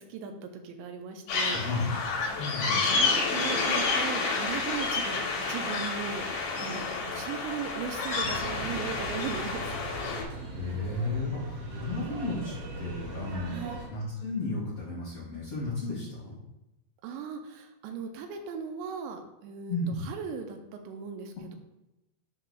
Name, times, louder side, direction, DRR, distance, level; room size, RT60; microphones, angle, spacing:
voice 1, 0.0-1.6 2.7-6.3 6.6-9.6 13.5-13.9 17.0-19.8 20.1-20.6 20.9-21.6, right 6 dB, 80° right, 4 dB, 2.8 m, -38 dB
sound 1, 1.3-10.2, left 4 dB, 90° left, 1.6 m, -29 dB
voice 2, 1.5-2.0 2.4-2.9 10.5-13.6 13.9-16.4 19.7-20.1, left 2 dB, 70° left, -7 dB, 1.5 m, -33 dB
sound 2, 8.2-13.9, right 2 dB, 60° right, 3.8 m, -39 dB
11.0 x 4.8 x 2.3 m, 0.95 s
omnidirectional pair, 5.3 m